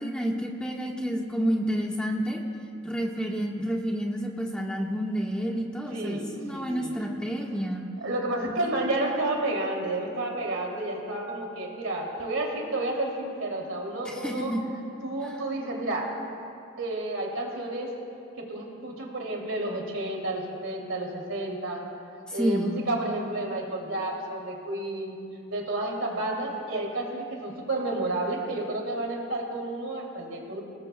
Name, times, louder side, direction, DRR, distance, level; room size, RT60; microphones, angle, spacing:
voice 1, 0.0-2.4 2.8-7.8 8.5-8.6 14.0-14.6 15.2-15.4 22.3-22.8, equal, 5° left, -1 dB, 1.4 m, -29 dB
voice 2, 5.9-6.2 6.5-7.0 8.0-14.5 15.0-16.1 16.8-17.9 18.4-21.8 22.3-25.2 25.5-30.6, right 2 dB, 75° right, -1 dB, 2.8 m, -31 dB
26.5 x 19.5 x 2.3 m, 2.6 s
head